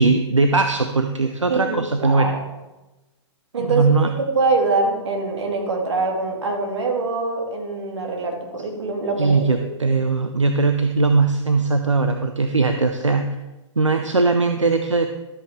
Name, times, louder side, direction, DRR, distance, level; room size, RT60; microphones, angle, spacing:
voice 1, 0.0-2.3 3.6-4.1 9.2-13.4 13.8-15.1, right 3 dB, 90° right, 6 dB, 0.7 m, -19 dB
voice 2, 1.5-2.4 3.5-3.8 4.3-9.4 9.8-9.9, right 3 dB, 70° right, 1 dB, 2.5 m, -24 dB
12.5 x 8.6 x 3.6 m, 1.1 s
figure-of-eight pair, 110°, 15 cm